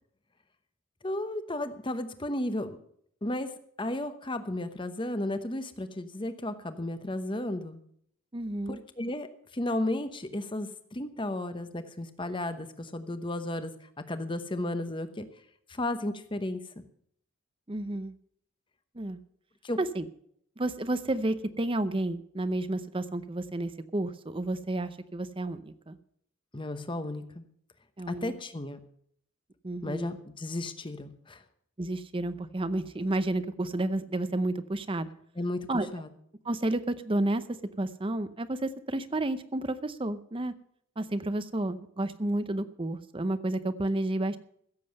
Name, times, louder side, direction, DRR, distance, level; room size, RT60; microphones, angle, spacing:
voice 1, 1.0-2.8 3.2-3.5 3.8-7.8 8.7-9.3 9.5-13.7 14.1-15.3 15.7-16.8 19.6-19.8 26.5-27.4 28.1-28.8 29.8-31.4 35.4-36.1, left 1 dB, 25° left, 10 dB, 1.0 m, -34 dB
voice 2, 8.3-8.8 17.7-18.1 18.9-19.2 19.8-20.1 20.6-26.0 28.0-28.3 29.6-30.2 31.8-35.1 35.7-35.9 36.4-37.4 37.8-40.5 41.0-44.4, right 1 dB, 25° right, 13 dB, 0.7 m, -31 dB
15.5 x 7.7 x 6.5 m, 0.68 s
head